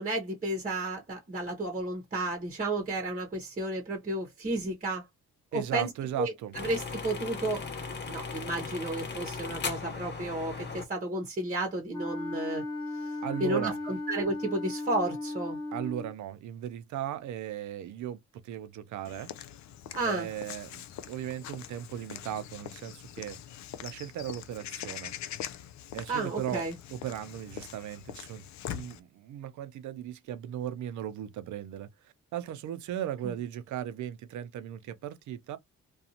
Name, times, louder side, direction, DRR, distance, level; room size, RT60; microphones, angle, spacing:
voice 1, 0.0-5.0 5.5-5.9 6.2-7.6 8.1-12.6 12.9-15.6 19.9-20.3 26.1-26.8, right 2 dB, 25° right, 0.9 m, -32 dB
voice 2, 5.5-6.5 13.2-13.8 15.7-19.3 20.1-23.4 23.8-25.1 25.9-26.6 26.9-28.4 28.7-35.6, right 11 dB, 75° right, 0.6 m, -37 dB
sound 1, 6.5-10.8, left 4 dB, 35° left, 0.9 m, -37 dB
Wind instrument woodwind instrument, 11.9-16.1, left 2 dB, 15° left, 0.9 m, -36 dB
Walk footsteps / Bird vocalization bird call bird song, 19.0-29.0, left 10 dB, 65° left, 0.5 m, -43 dB
2.5 x 2.3 x 2.7 m
cardioid pair, 90°, 30 cm